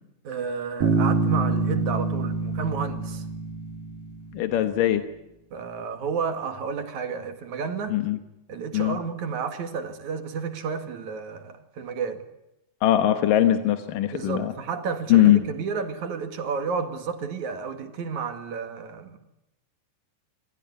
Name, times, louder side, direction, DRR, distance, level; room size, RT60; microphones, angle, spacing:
voice 1, 0.2-3.3 5.5-8.0 8.5-12.2 14.1-19.2, right 5 dB, 65° right, 3.3 m, -31 dB
Bass guitar, 0.8-4.5, right 4 dB, 80° right, 3.7 m, -26 dB
voice 2, 4.3-5.0 7.9-8.2 8.7-9.0 12.8-14.5 15.1-15.4, left 12 dB, 90° left, 2.9 m, -20 dB
27.0 x 17.5 x 9.7 m
omnidirectional pair, 3.7 m